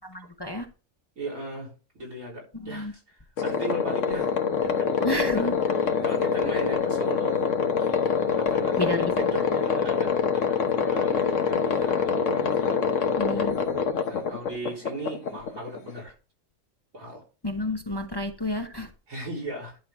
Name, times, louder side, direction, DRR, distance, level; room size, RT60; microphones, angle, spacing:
voice 1, 0.1-0.7 2.6-2.9 5.0-5.6 6.5-6.6 8.8-9.1 13.2-13.5 17.4-18.9, left 1 dB, 20° left, 0.8 m, -30 dB
voice 2, 1.2-4.3 4.6-7.6 8.4-13.1 14.1-16.1 16.9-17.2 19.1-19.8, right 2 dB, 90° right, 4.3 m, -37 dB
sound 1, 3.4-16.0, left 6 dB, 70° left, 1.3 m, -25 dB
11.0 x 5.7 x 3.6 m
omnidirectional pair, 1.3 m